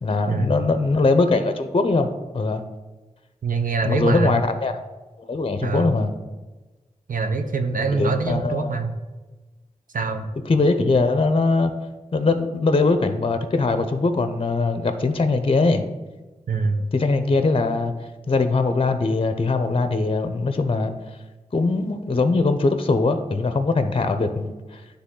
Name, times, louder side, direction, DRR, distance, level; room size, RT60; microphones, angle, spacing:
voice 1, 0.0-2.6 3.8-4.7 5.2-6.1 7.9-8.8 10.5-11.7 12.1-15.8 16.9-17.9 18.3-20.9 21.5-24.8, left 3 dB, 40° left, 9 dB, 0.6 m, -21 dB
voice 2, 3.4-4.4 5.6-5.9 7.1-8.9 9.9-10.3 16.5-16.8, right 4 dB, 80° right, 6 dB, 0.7 m, -24 dB
9.7 x 3.4 x 3.8 m, 1.2 s
cardioid pair, 50°, 14 cm